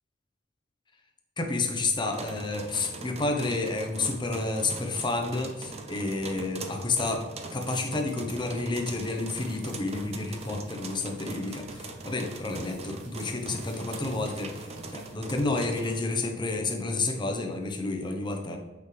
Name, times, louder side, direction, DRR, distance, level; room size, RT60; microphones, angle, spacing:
voice 1, 1.4-7.2 7.5-18.6, left 3 dB, 25° left, 3 dB, 0.8 m, -30 dB
sound 1, 2.0-16.0, right 3 dB, 35° right, 0.6 m, -41 dB
sound 2, 9.0-15.3, right 3 dB, 70° right, 1.4 m, -55 dB
6.8 x 5.3 x 3.3 m, 1.2 s
head